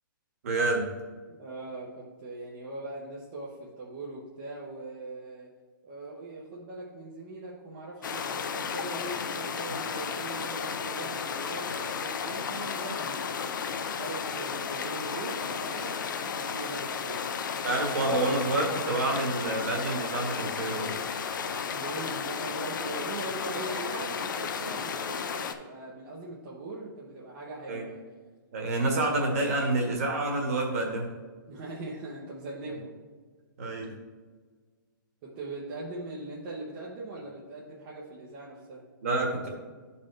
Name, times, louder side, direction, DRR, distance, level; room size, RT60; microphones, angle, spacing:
voice 1, 0.4-0.8 17.6-20.9 27.7-27.8 28.5-31.1 33.6-33.9 39.0-39.5, right 2 dB, 40° right, 1 dB, 1.4 m, -28 dB
voice 2, 1.4-5.5 5.8-13.3 14.0-17.4 21.7-28.0 31.5-32.9 33.6-33.7 35.2-38.8, right 2 dB, 20° right, -6 dB, 0.8 m, -41 dB
sound 1, 8.0-25.5, left 6 dB, 60° left, 0.6 m, -33 dB
10.5 x 4.3 x 3.2 m, 1.5 s
hypercardioid pair, 175°, 12 cm